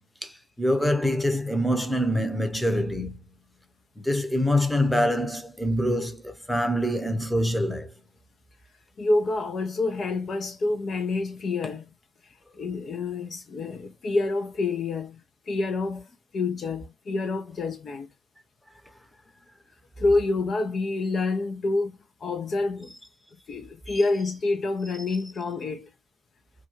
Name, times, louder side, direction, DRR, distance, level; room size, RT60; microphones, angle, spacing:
voice 1, 0.2-3.2 4.0-7.9 23.9-24.0, equal, 5° left, 0.8 m, -25 dB
voice 2, 9.0-11.9 12.2-18.1 20.0-22.9 23.5-25.9, left 3 dB, 45° left, 0.4 m, -28 dB
2.3 x 2.2 x 3.0 m
hypercardioid pair, 55°, 0 cm